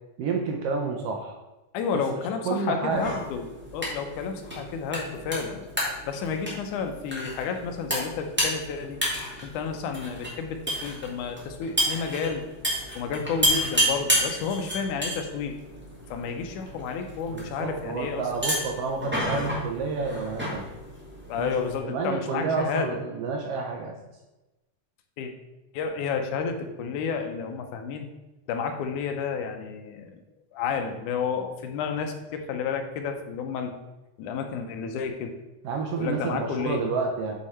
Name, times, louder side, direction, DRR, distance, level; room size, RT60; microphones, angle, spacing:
voice 1, 0.2-1.3 2.4-3.2 17.3-20.6 21.4-21.5 21.8-23.9 35.6-37.3, right 4 dB, 75° right, 1 dB, 1.4 m, -29 dB
voice 2, 1.7-5.6 6.1-9.0 9.4-12.5 13.0-15.6 16.1-18.3 21.3-23.0 25.2-25.3 25.7-28.1 28.5-30.2 30.5-33.7 34.2-35.4 36.0-36.9, left 6 dB, 80° left, 5 dB, 2.2 m, -31 dB
sound 1, 2.9-21.8, equal, 5° right, 0.9 m, -31 dB
8.2 x 3.7 x 4.2 m, 1.1 s
omnidirectional pair, 3.5 m